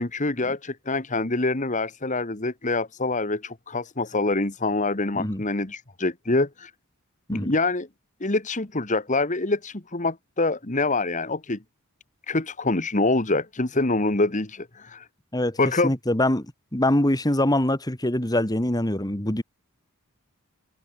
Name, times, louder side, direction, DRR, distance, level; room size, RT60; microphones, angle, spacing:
voice 1, 0.0-6.7 7.3-7.9 8.2-11.6 12.3-15.0 15.6-15.9, left 2 dB, 35° left, 1.6 m, -25 dB
voice 2, 15.8-19.4, left 1 dB, 15° left, 1.9 m, -24 dB
head